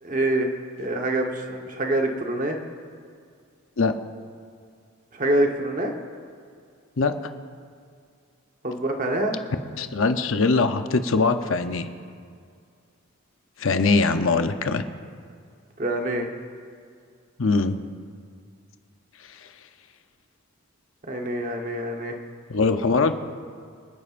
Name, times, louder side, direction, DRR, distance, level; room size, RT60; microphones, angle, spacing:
voice 1, 0.0-0.5 0.8-2.6 5.1-6.0 8.6-9.4 15.8-16.3 21.1-22.1, right 1 dB, 40° right, 2 dB, 1.2 m, -25 dB
voice 2, 9.8-11.9 13.6-14.8 17.4-17.8 22.5-23.1, left 3 dB, 75° left, 8 dB, 0.7 m, -22 dB
26.0 x 9.7 x 2.6 m, 2.2 s
head